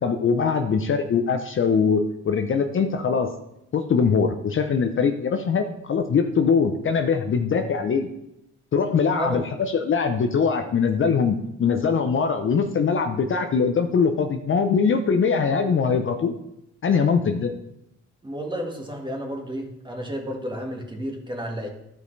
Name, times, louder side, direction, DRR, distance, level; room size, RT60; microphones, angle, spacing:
voice 1, 0.0-3.3 3.7-8.1 8.7-16.3 16.8-17.5, left 5 dB, 40° left, 6 dB, 0.7 m, -22 dB
voice 2, 18.2-21.7, equal, 15° right, 1 dB, 1.7 m, -31 dB
12.0 x 5.2 x 3.3 m, 0.83 s
cardioid pair, 90°, 30 cm